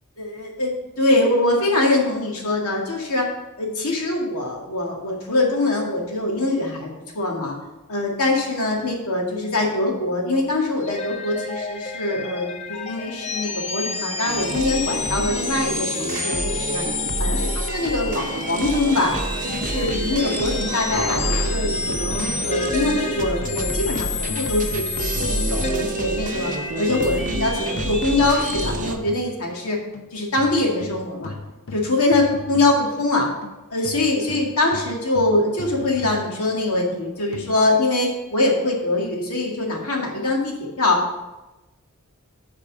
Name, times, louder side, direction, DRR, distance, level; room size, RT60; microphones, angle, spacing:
voice 1, 0.2-3.3 3.6-7.6 7.9-16.8 17.2-26.5 26.8-29.8 30.1-31.3 31.7-33.3 33.7-41.1, left 2 dB, 80° left, -1 dB, 2.0 m, -23 dB
sound 1, 10.8-28.7, left 4 dB, 30° left, 0.7 m, -30 dB
sound 2, 14.3-29.0, right 2 dB, 35° right, 0.6 m, -28 dB
sound 3, 21.8-26.6 26.9-37.4, left 2 dB, 65° left, 0.8 m, -38 dB
8.4 x 4.5 x 7.3 m, 1.1 s
head